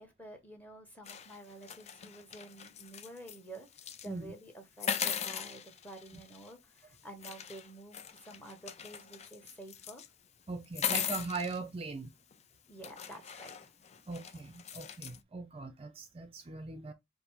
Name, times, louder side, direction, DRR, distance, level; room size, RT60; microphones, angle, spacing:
voice 1, 0.0-3.7 4.0-10.0 12.7-13.7, right 1 dB, 10° left, 1.1 m, -50 dB
sound 1, 1.1-3.4 3.7-4.1 4.8-6.5 7.2-10.1 10.6-11.6 12.3-12.4 12.8-15.2, left 8 dB, 35° left, 0.4 m, -39 dB
voice 2, 10.5-12.1 14.1-16.9, right 3 dB, 30° right, 0.5 m, -40 dB
5.1 x 2.0 x 4.6 m
head